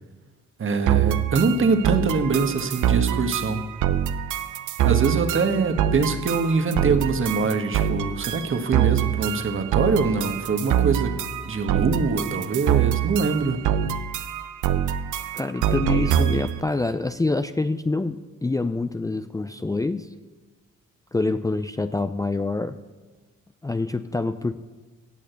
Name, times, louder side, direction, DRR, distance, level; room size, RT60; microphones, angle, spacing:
voice 1, 0.6-3.7 4.8-11.1 11.4-13.6, right 4 dB, 40° right, 8 dB, 1.6 m, -23 dB
sound 1, 0.9-16.6, right 10 dB, 80° right, 0.9 m, -25 dB
voice 2, 15.3-20.1 21.1-22.8 23.6-24.5, left 3 dB, 10° left, 10 dB, 0.5 m, -26 dB
17.0 x 6.5 x 8.2 m, 1.3 s
cardioid pair, 90°, 30 cm